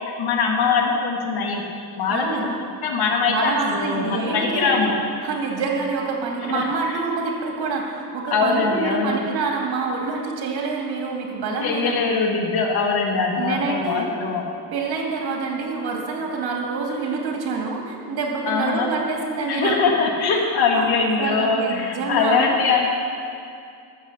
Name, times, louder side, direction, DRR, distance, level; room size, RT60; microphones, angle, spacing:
voice 1, 0.0-1.6 2.0-2.5 2.8-4.9 6.5-7.0 8.3-9.2 11.6-14.4 18.4-18.9 19.5-22.9, left 4 dB, 60° left, 0 dB, 1.7 m, -22 dB
voice 2, 2.1-2.5 3.3-4.9 5.2-12.0 13.4-14.1 14.7-20.0 20.7-20.9 21.2-22.6, right 4 dB, 60° right, 0 dB, 2.6 m, -26 dB
13.0 x 7.1 x 7.0 m, 2.4 s
cardioid pair, 135°, 42 cm